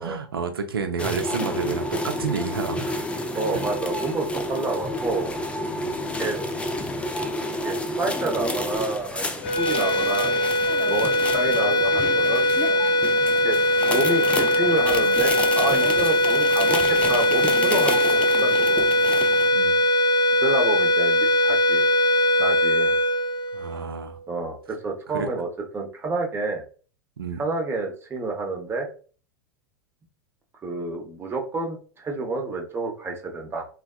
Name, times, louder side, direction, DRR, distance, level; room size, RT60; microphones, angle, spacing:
voice 1, 0.0-3.0 3.5-3.6 5.7-6.0 19.5-19.8 23.5-24.2 25.1-25.3 27.2-27.4, right 5 dB, 90° right, 0.5 m, -30 dB
sound 1, 1.0-19.5, left 1 dB, 10° left, 0.4 m, -30 dB
voice 2, 3.3-5.3 6.2-6.4 7.5-10.3 10.9-12.5 13.4-18.8 20.4-21.9 22.4-23.0 24.3-25.5 25.7-26.6 27.4-28.9 30.6-33.7, right 3 dB, 20° right, 0.8 m, -29 dB
sound 2, 9.4-24.0, left 1 dB, 55° left, 0.7 m, -21 dB
3.3 x 2.2 x 2.2 m
hypercardioid pair, 95°, 12 cm